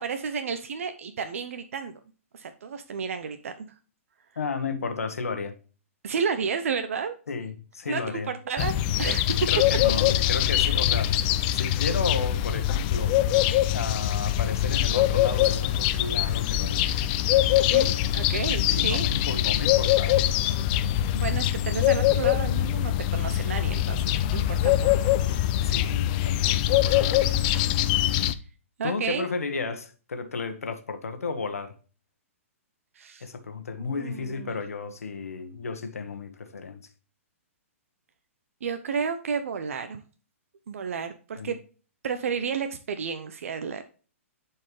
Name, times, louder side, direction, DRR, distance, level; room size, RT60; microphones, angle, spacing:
voice 1, 0.0-2.0 2.3-3.7 6.0-7.2 7.9-8.7 9.0-9.5 17.7-19.1 21.1-24.9 28.8-29.4 32.9-33.3 33.8-34.5 38.6-40.0 40.7-41.6 42.0-43.8, right 6 dB, 70° right, 0.7 m, -31 dB
voice 2, 4.4-5.5 7.3-8.3 9.3-13.3 13.7-16.9 18.7-20.2 25.6-27.3 28.8-31.7 33.2-36.8 41.4-41.5, left 4 dB, 85° left, 1.3 m, -33 dB
sound 1, 8.6-28.3, left 12 dB, 35° left, 0.5 m, -23 dB
11.0 x 4.5 x 3.2 m
hypercardioid pair, 135°, 8 cm